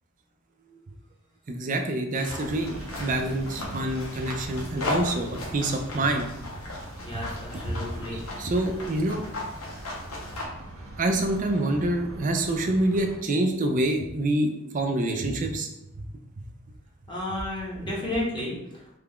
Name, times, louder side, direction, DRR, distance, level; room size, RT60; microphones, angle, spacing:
voice 1, 1.5-6.3 8.1-9.2 11.0-15.7, right 1 dB, 35° right, 4 dB, 0.4 m, -26 dB
sound 1, 2.1-10.4, left 2 dB, 85° left, 0.9 m, -37 dB
sound 2, 2.4-13.2, right 1 dB, 80° right, 0.7 m, -41 dB
voice 2, 7.0-8.5 17.1-19.0, left 1 dB, 20° left, -5 dB, 0.8 m, -32 dB
3.3 x 2.3 x 3.5 m, 0.87 s
head